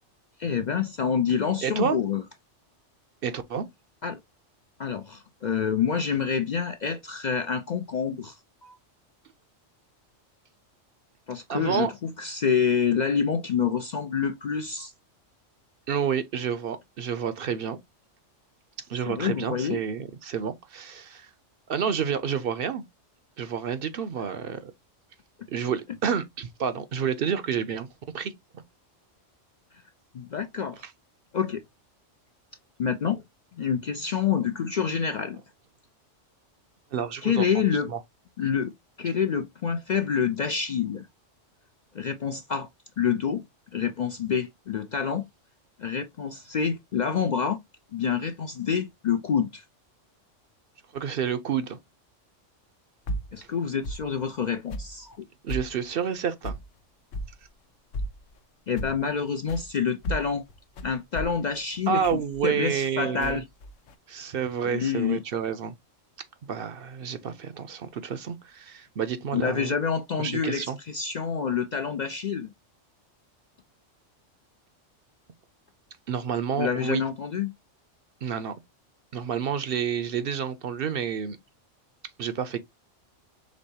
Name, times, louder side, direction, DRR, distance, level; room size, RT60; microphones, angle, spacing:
voice 1, 0.4-2.2 4.0-4.2 4.8-8.4 8.6-8.8 11.3-14.9 19.1-19.8 30.1-30.9 31.3-31.6 32.8-33.2 33.6-35.4 37.2-37.9 38.4-38.7 39.0-41.1 41.9-42.7 43.0-43.4 43.7-45.3 45.8-47.6 47.9-49.6 53.3-55.3 58.7-60.4 60.8-63.4 64.7-65.2 69.3-72.5 76.6-77.5, left 7 dB, 60° left, 0.4 m, -27 dB
voice 2, 1.6-2.0 3.2-3.7 11.5-11.9 15.9-17.8 18.9-21.3 21.7-22.8 23.4-24.7 25.5-27.9 28.1-28.6 30.8-30.9 36.9-37.5 37.9-38.0 50.9-51.8 55.4-56.6 61.9-63.4 64.1-65.7 66.5-69.7 70.2-70.8 76.1-77.0 78.2-78.5 79.1-81.4 82.2-82.6, right 7 dB, 60° right, 0.7 m, -29 dB
sound 1, 53.1-53.3 53.8-54.1 54.7-54.9 55.5-55.7 56.4-56.7 57.1-57.3 57.9-58.2 58.8-59.1 59.5-59.7 60.0-62.9 63.2-63.9, equal, 85° left, 1.1 m, -34 dB
5.2 x 3.5 x 2.7 m
omnidirectional pair, 1.3 m